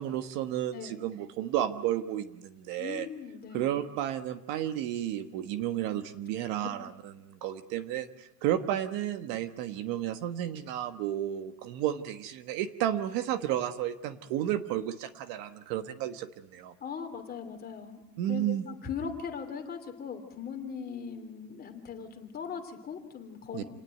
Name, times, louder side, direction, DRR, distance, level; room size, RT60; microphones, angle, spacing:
voice 1, 0.0-3.1 3.5-6.9 7.2-16.7 18.2-18.7 23.5-23.6, right 11 dB, 50° right, 10 dB, 1.3 m, -32 dB
voice 2, 0.7-1.0 2.8-3.7 16.8-18.0 18.3-23.6, left 6 dB, 20° left, 5 dB, 3.0 m, -39 dB
28.0 x 19.0 x 9.1 m, 0.92 s
cardioid pair, 170°, 46 cm